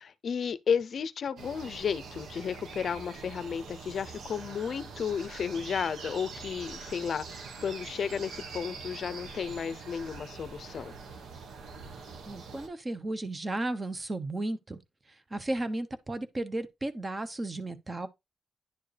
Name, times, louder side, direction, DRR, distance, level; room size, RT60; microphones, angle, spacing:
voice 1, 0.0-10.9, left 7 dB, 60° left, 0.5 m, -33 dB
sound 1, 1.4-12.7, right 4 dB, 80° right, 1.2 m, -44 dB
voice 2, 12.3-14.8 15.3-18.1, right 2 dB, 25° right, 0.8 m, -34 dB
10.5 x 4.5 x 3.3 m
cardioid pair, 110°, 0 cm